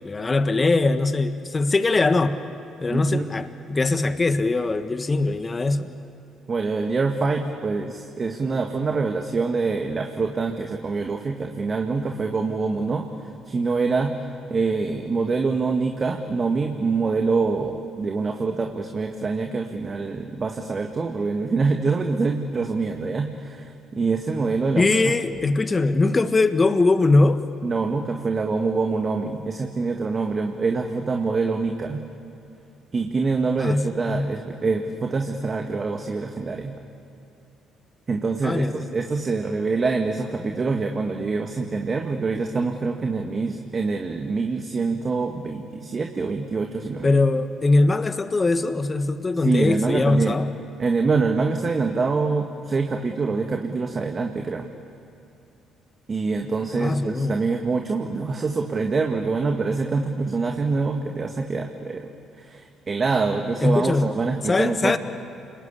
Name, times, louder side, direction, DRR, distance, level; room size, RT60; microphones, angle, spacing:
voice 1, 0.0-2.4 2.8-5.9 24.7-27.4 33.6-34.3 38.4-38.9 47.0-50.5 56.8-57.4 63.6-64.1 64.5-65.0, left 3 dB, 30° left, 10 dB, 1.5 m, -21 dB
voice 2, 2.9-3.3 6.5-13.1 13.5-14.2 14.5-25.1 25.4-25.5 27.6-32.0 32.9-36.8 38.1-47.1 49.4-50.4 50.8-54.7 56.1-62.1 62.4-65.0, right 4 dB, 40° right, 4 dB, 1.9 m, -25 dB
29.5 x 21.0 x 8.5 m, 2.7 s
hypercardioid pair, 50°, 0 cm